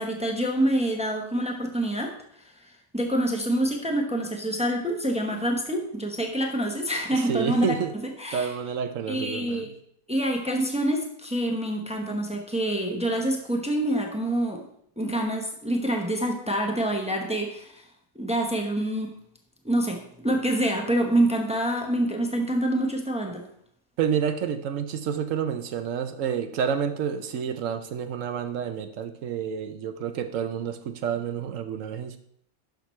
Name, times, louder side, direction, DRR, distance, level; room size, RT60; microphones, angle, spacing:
voice 1, 0.0-2.1 2.9-7.7 8.0-8.5 9.1-9.7 10.1-14.6 15.0-17.8 18.2-19.1 19.6-23.4, right 1 dB, 5° right, 2 dB, 0.8 m, -26 dB
voice 2, 7.1-7.9 8.3-9.6 24.0-32.2, right 8 dB, 65° right, 9 dB, 1.0 m, -29 dB
11.5 x 5.9 x 3.2 m, 0.70 s
omnidirectional pair, 1.5 m